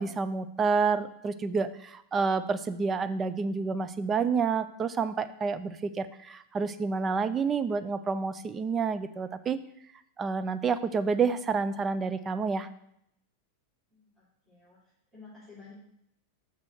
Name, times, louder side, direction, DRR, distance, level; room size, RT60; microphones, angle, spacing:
voice 1, 0.0-9.6 10.2-12.7, right 5 dB, 20° right, 11 dB, 0.5 m, -29 dB
voice 2, 14.5-14.8 15.1-15.7, left 4 dB, 5° right, -11 dB, 3.7 m, -50 dB
6.2 x 5.3 x 6.2 m, 0.74 s
figure-of-eight pair, 90°, 0 cm